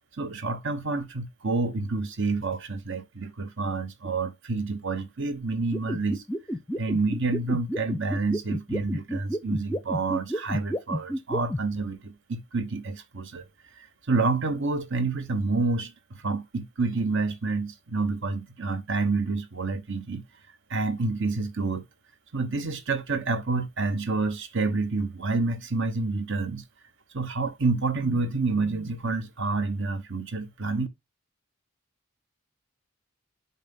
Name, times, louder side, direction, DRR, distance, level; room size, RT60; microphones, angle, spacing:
voice 1, 0.2-6.2 6.8-13.5 13.8-20.2 20.7-21.8 22.3-26.6 27.1-30.9, right 3 dB, 60° right, 1.0 m, -28 dB
sound 1, 5.7-11.6, equal, 10° left, 0.5 m, -30 dB
5.7 x 5.5 x 5.5 m
head